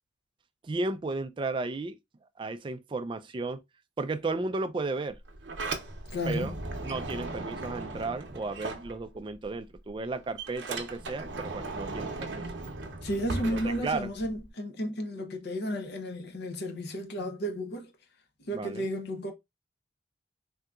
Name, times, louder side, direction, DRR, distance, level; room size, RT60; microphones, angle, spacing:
voice 1, 0.6-2.0 2.4-3.6 4.0-5.2 6.3-6.5 6.8-12.4 13.4-14.1 18.5-18.9, right 3 dB, 25° right, 0.3 m, -34 dB
Sliding door, 5.1-9.4 9.8-14.5, right 3 dB, 65° right, 0.7 m, -38 dB
voice 2, 6.1-6.6 13.0-17.9 18.4-19.3, equal, 55° left, 0.6 m, -33 dB
3.5 x 2.7 x 2.3 m
head